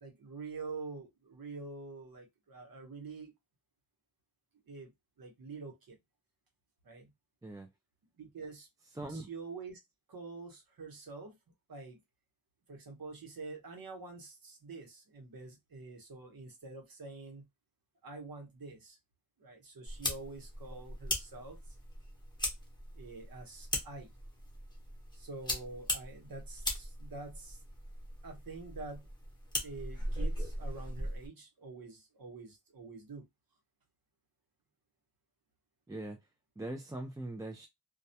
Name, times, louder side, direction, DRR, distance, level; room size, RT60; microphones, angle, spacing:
voice 1, 0.0-3.3 4.7-4.9 5.2-6.0 6.8-7.1 8.2-8.7 9.1-9.8 10.1-11.4 11.7-12.0 12.7-17.5 18.0-19.0 19.4-21.8 22.9-24.1 25.1-27.6 28.2-29.1 29.6-33.3, right 3 dB, 85° right, 0.9 m, -46 dB
voice 2, 9.0-9.3 35.9-36.2 36.6-37.7, right 2 dB, 10° right, 0.3 m, -41 dB
sound 1, 19.9-31.3, left 1 dB, 15° left, 0.9 m, -39 dB
2.3 x 2.1 x 2.7 m
wide cardioid pair, 115°, 35 cm